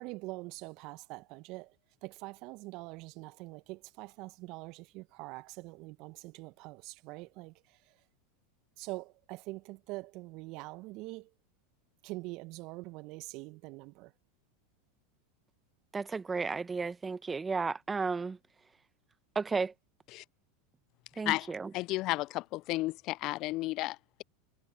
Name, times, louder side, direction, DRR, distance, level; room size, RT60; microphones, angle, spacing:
voice 1, 0.0-1.8 2.0-8.0 8.8-11.3 12.0-14.1, right 22 dB, 50° right, 1.2 m, -44 dB
voice 2, 15.9-18.4 19.3-19.7 21.2-21.7, right 4 dB, 15° right, 1.5 m, -33 dB
voice 3, 21.3-24.2, left 19 dB, 50° left, 0.5 m, -33 dB
hypercardioid pair, 85°, 0 cm